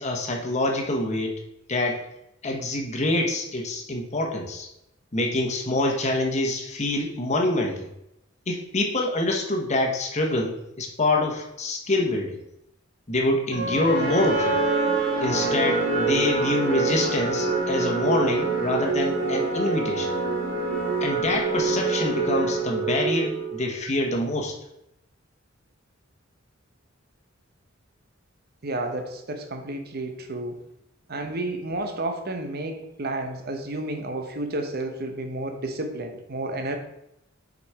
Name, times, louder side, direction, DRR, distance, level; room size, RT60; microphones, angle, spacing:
voice 1, 0.0-1.4 1.7-2.0 2.4-4.7 5.1-7.9 8.5-12.4 13.1-14.6 15.2-20.1 21.0-24.5, left 2 dB, 35° left, 1 dB, 1.2 m, -26 dB
sound 1, 13.5-23.7, right 3 dB, 70° right, 1.7 m, -25 dB
voice 2, 28.6-30.6 31.1-36.8, right 2 dB, 50° right, 5 dB, 1.0 m, -31 dB
6.3 x 5.1 x 4.7 m, 0.83 s
head